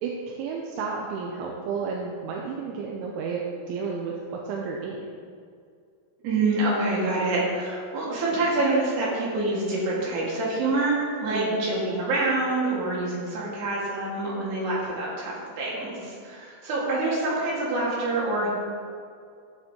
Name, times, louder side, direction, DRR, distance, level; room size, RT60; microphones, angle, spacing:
voice 1, 0.0-5.0 11.3-11.7, right 5 dB, 80° right, -1 dB, 3.0 m, -32 dB
voice 2, 6.2-18.5, right 2 dB, 60° right, -5 dB, 3.8 m, -26 dB
15.0 x 6.8 x 3.1 m, 2.2 s
omnidirectional pair, 5.9 m